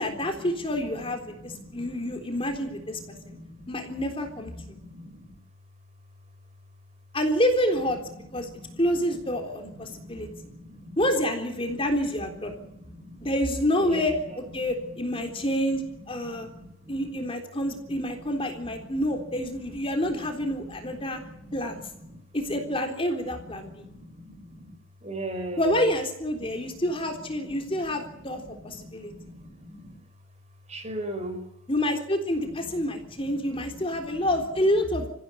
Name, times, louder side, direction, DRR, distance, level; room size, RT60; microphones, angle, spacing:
voice 1, 0.0-3.0 3.3-3.4 3.7-4.5 7.1-8.0 8.3-8.5 8.8-10.3 11.0-12.5 13.2-16.5 16.9-21.2 21.5-21.8 22.3-23.9 25.6-29.1 31.7-35.1, equal, 25° left, 4 dB, 3.7 m, -28 dB
voice 2, 1.4-2.2 2.7-3.7 4.6-5.3 8.1-8.8 9.8-11.0 11.7-11.9 12.5-13.3 13.8-14.0 15.3-15.4 16.2-17.2 17.9-18.0 18.3-18.4 20.6-21.8 22.0-22.2 23.6-24.8 25.0-25.6 26.5-26.8 27.4-27.8 28.3-30.0 30.7-31.4 33.2-33.3 34.1-34.2, right 1 dB, 30° right, 7 dB, 5.1 m, -41 dB
28.0 x 16.0 x 9.9 m, 0.81 s
head